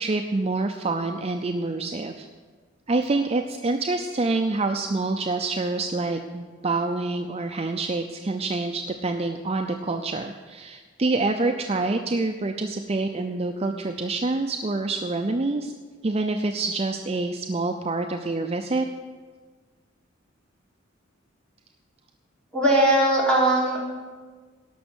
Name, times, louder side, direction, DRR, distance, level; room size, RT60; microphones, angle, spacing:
voice 1, 0.0-2.3 2.9-15.7 16.0-18.9, right 3 dB, 30° right, 4 dB, 0.5 m, -26 dB
voice 2, 22.5-23.8, right 1 dB, 5° left, -6 dB, 3.4 m, -19 dB
17.5 x 6.1 x 6.2 m, 1.5 s
head